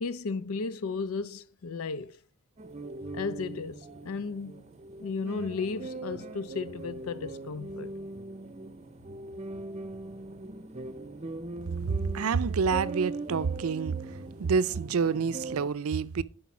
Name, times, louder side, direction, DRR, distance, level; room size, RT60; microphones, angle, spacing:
voice 1, 0.0-2.2 3.1-4.6 5.0-7.9, left 4 dB, 90° left, 0.5 m, -34 dB
sound 1, 2.6-15.7, right 2 dB, 30° right, 0.6 m, -40 dB
voice 2, 12.1-14.0 14.4-16.2, right 5 dB, 90° right, 0.5 m, -27 dB
10.0 x 5.1 x 5.9 m
head